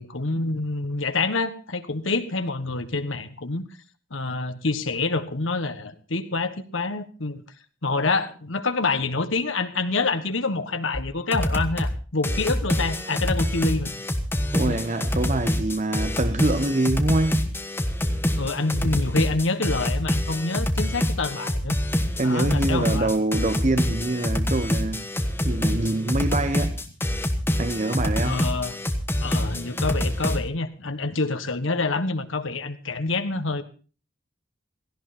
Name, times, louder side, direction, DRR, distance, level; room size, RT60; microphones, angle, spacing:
voice 1, 0.0-3.6 4.1-7.4 7.8-13.9 14.7-14.8 18.4-21.8 22.2-23.1 28.2-28.8 29.2-33.6, left 3 dB, 80° left, 1.4 m, -27 dB
sound 1, 10.9-11.0 11.3-11.9 12.2-30.4, left 1 dB, 10° left, 1.3 m, -26 dB
voice 2, 14.5-17.6 22.2-25.0 25.4-26.8 27.6-28.4, right 2 dB, 35° right, 0.8 m, -25 dB
17.0 x 15.5 x 4.2 m
head